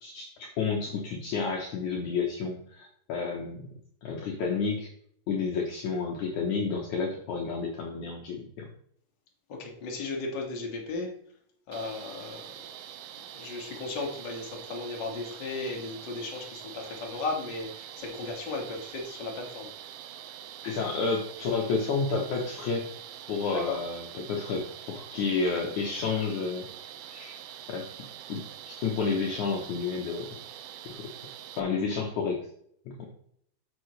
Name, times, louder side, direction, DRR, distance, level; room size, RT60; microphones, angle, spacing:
voice 1, 0.0-3.6 4.0-4.9 5.3-8.7 20.6-22.8 23.3-26.7 27.1-27.4 27.7-27.9 28.3-30.3 30.9-31.1 31.6-32.4 32.9-33.1, left 4 dB, 85° left, 0 dB, 1.7 m, -30 dB
voice 2, 9.5-11.1 11.7-12.6 13.2-19.7 23.5-23.7, left 3 dB, 45° left, 0 dB, 1.5 m, -35 dB
sound 1, 11.7-31.6, right 10 dB, 85° right, 3.1 m, -45 dB
11.0 x 6.8 x 3.2 m, 0.67 s
omnidirectional pair, 5.1 m